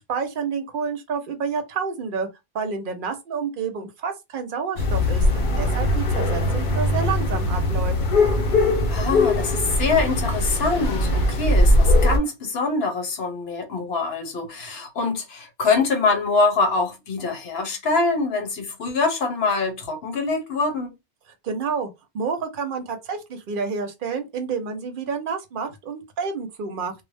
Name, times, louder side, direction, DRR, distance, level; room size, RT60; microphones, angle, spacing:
voice 1, 0.0-2.3 2.5-8.0 21.4-26.9, right 5 dB, 60° right, 0.7 m, -29 dB
sound 1, 4.8-12.2, left 1 dB, 60° left, 0.7 m, -20 dB
voice 2, 8.9-20.9, left 3 dB, 75° left, 1.0 m, -24 dB
2.0 x 2.0 x 3.3 m
omnidirectional pair, 1.0 m